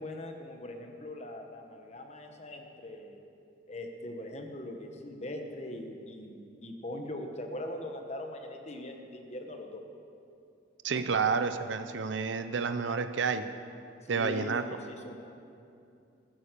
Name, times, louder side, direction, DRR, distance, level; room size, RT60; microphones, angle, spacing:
voice 1, 0.0-3.2 3.7-9.8 10.9-11.0 14.0-15.1, left 1 dB, 35° left, 4 dB, 1.2 m, -41 dB
voice 2, 10.8-13.4 14.1-14.6, right 5 dB, 80° right, 10 dB, 0.6 m, -30 dB
13.5 x 9.3 x 6.8 m, 2.6 s
head